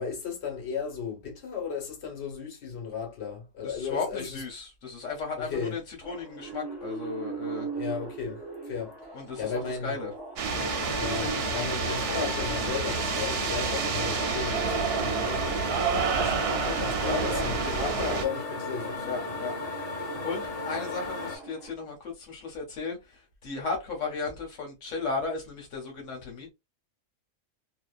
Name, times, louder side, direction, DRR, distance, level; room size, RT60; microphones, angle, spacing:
voice 1, 0.0-4.4 5.4-5.8 7.7-9.1 9.4-10.0 10.9-19.4, left 6 dB, 60° left, 1.3 m, -35 dB
voice 2, 3.6-7.7 9.1-10.1 10.9-11.0 16.6-16.7 17.0-17.5 19.0-19.6 20.2-26.5, left 4 dB, 80° left, 1.2 m, -35 dB
sound 1, 6.0-21.7, right 4 dB, 25° right, 0.8 m, -42 dB
sound 2, 10.4-21.4, left 3 dB, 35° left, 0.7 m, -35 dB
sound 3, 10.4-18.3, right 6 dB, 60° right, 0.7 m, -29 dB
2.8 x 2.1 x 2.3 m
omnidirectional pair, 1.3 m